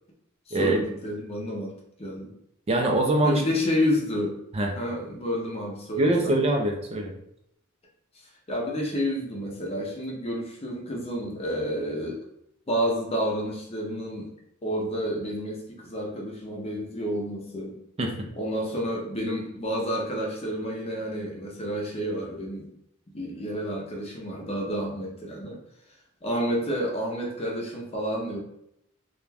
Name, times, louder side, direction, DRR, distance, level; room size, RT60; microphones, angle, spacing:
voice 1, 0.5-2.3 3.2-4.4 4.8-6.4 8.1-12.2 12.7-14.3 14.6-17.8 18.4-22.7 23.1-25.6 26.2-28.4, equal, 30° left, -1 dB, 0.6 m, -30 dB
voice 2, 2.7-3.4 4.5-4.7 6.0-7.1 18.0-18.1, right 1 dB, 30° right, 2 dB, 0.3 m, -23 dB
2.4 x 2.2 x 3.2 m, 0.77 s
head